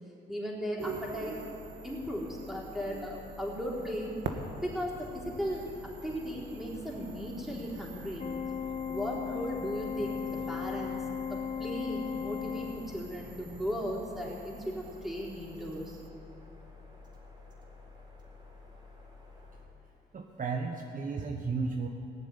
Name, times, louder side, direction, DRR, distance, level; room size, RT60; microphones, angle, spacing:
voice 1, 0.3-1.4 1.8-4.1 4.6-8.3 8.9-11.0 11.3-16.0, equal, ahead, -4 dB, 4.2 m, -36 dB
sound 1, 0.8-16.1, right 4 dB, 65° right, 1.4 m, -46 dB
sound 2, 0.9-19.7, left 3 dB, 20° right, 4.0 m, -52 dB
Organ, 8.2-13.3, left 7 dB, 35° left, 0.6 m, -36 dB
voice 2, 20.1-21.9, right 4 dB, 40° right, 2 dB, 1.2 m, -33 dB
18.0 x 7.2 x 9.7 m, 2.8 s
cardioid pair, 90°, 20 cm